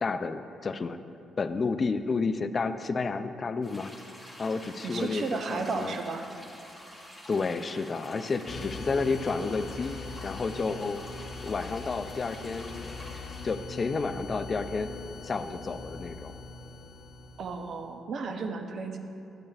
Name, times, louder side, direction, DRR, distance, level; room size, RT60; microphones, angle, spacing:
voice 1, 0.0-1.0 1.4-3.9 4.4-6.0 7.3-11.0 11.4-12.9 13.4-14.9 15.2-16.3, left 4 dB, 40° left, 11 dB, 0.3 m, -31 dB
sound 1, 3.6-13.6, equal, 15° right, 2.0 m, -47 dB
voice 2, 4.8-6.2 17.4-19.0, right 4 dB, 60° right, 6 dB, 0.6 m, -33 dB
sound 2, 8.5-17.8, left 3 dB, 55° left, 0.7 m, -42 dB
10.5 x 8.6 x 2.4 m, 2.7 s
cardioid pair, 90°, 0 cm